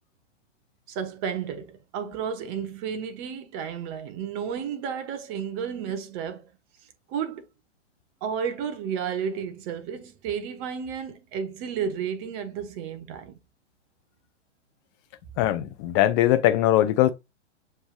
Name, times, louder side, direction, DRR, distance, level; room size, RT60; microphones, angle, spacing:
voice 1, 0.9-6.5 7.1-7.4 8.2-13.4, right 7 dB, 30° right, 1.0 m, -32 dB
voice 2, 15.4-17.1, left 13 dB, 20° left, 0.5 m, -21 dB
6.9 x 3.3 x 2.3 m
hypercardioid pair, 120°, 36 cm